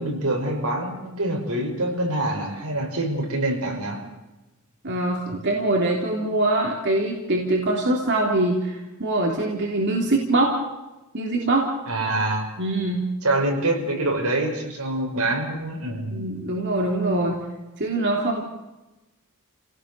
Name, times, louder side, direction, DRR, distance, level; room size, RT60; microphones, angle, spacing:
voice 1, 0.0-4.0 11.9-12.5 13.2-16.2, right 1 dB, 80° right, 2 dB, 5.9 m, -25 dB
voice 2, 4.8-10.5 11.1-11.6 12.6-13.0 16.1-17.4 17.8-18.4, right 2 dB, 55° right, 0 dB, 3.4 m, -23 dB
29.5 x 18.0 x 7.0 m, 1.1 s
head